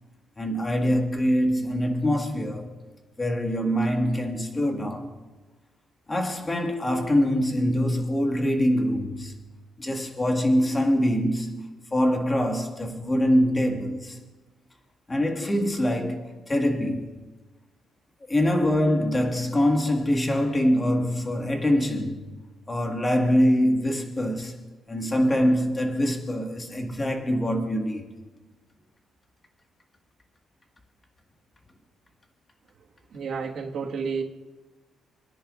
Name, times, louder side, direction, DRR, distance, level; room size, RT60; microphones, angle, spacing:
voice 1, 0.4-2.7 3.2-5.2 6.1-9.4 9.8-14.2 15.1-17.2 18.3-22.4 22.7-24.5 24.9-28.1, equal, 20° left, 1.8 m, -24 dB
voice 2, 33.1-34.2, right 5 dB, 60° right, 1.7 m, -30 dB
28.5 x 10.5 x 2.5 m
cardioid pair, 125°, 0 cm